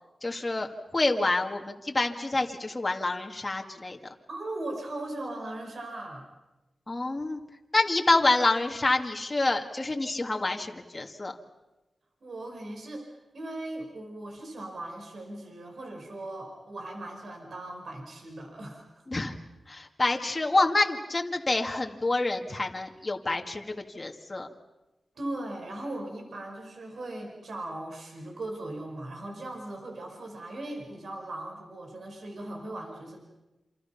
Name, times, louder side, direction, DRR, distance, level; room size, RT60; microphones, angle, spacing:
voice 1, 0.2-0.7 0.9-4.0 6.9-7.4 7.7-11.3 19.1-19.3 19.7-24.5, left 2 dB, 30° left, 2 dB, 2.0 m, -27 dB
voice 2, 4.3-6.2 12.2-13.1 13.3-19.1 25.2-33.2, right 1 dB, 70° right, 2 dB, 5.3 m, -38 dB
28.5 x 27.0 x 5.8 m, 1.0 s
wide cardioid pair, 85°, 0 cm